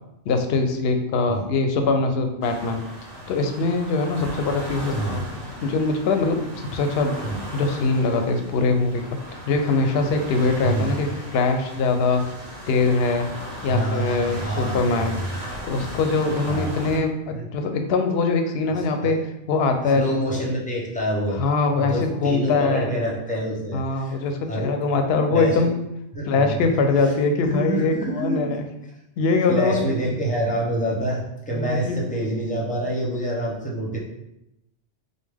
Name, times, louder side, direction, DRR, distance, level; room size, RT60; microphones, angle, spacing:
voice 1, 0.2-2.8 3.3-5.2 5.6-7.1 7.5-9.0 9.5-12.2 12.7-13.3 13.6-15.2 15.6-19.2 19.5-20.2 21.4-22.9 23.7-25.8 26.3-28.6 29.2-29.9 31.5-32.0, left 3 dB, 65° left, 5 dB, 0.8 m, -22 dB
sound 1, 2.4-17.0, equal, 65° right, 1.1 m, -37 dB
voice 2, 13.7-15.2 16.5-16.8 17.3-17.4 19.0-19.1 19.9-21.4 21.8-24.2 24.5-24.8 25.3-25.6 26.1-26.5 27.4-28.5 29.5-34.0, right 1 dB, 10° left, -5 dB, 0.8 m, -27 dB
5.0 x 2.2 x 3.4 m, 0.85 s
omnidirectional pair, 1.2 m